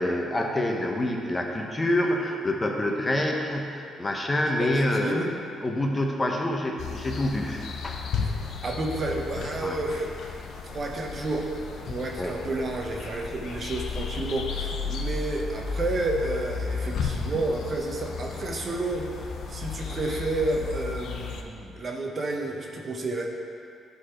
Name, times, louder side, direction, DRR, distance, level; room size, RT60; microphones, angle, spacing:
voice 1, 0.0-5.3 5.6-8.0 9.6-9.8 12.2-12.4, left 1 dB, 25° left, 1 dB, 0.9 m, -27 dB
voice 2, 4.6-5.3 8.2-10.5 10.7-23.3, right 2 dB, 45° right, 1 dB, 1.1 m, -31 dB
sound 1, 6.8-21.4, left 5 dB, 70° left, 0.7 m, -34 dB
10.5 x 4.1 x 4.8 m, 2.5 s
cardioid pair, 90°, 0 cm